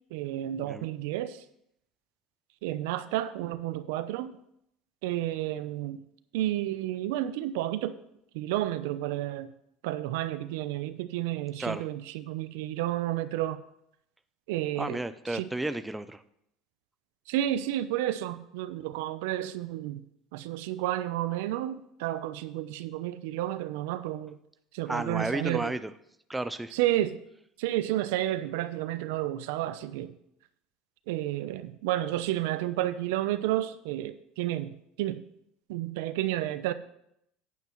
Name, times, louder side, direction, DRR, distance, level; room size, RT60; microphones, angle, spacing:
voice 1, 0.1-1.4 2.6-4.3 5.0-6.0 6.3-8.0 8.3-9.5 9.8-13.6 14.5-15.0 15.3-15.5 17.3-20.0 20.3-24.4 24.7-25.7 26.7-27.2 27.6-30.1 31.1-35.2 35.7-36.7, right 14 dB, 85° right, 13 dB, 0.6 m, -31 dB
voice 2, 14.8-16.2 24.9-25.9 26.3-26.7, right 2 dB, 5° right, 11 dB, 0.4 m, -32 dB
11.0 x 9.2 x 3.1 m, 0.76 s
cardioid pair, 145°, 0 cm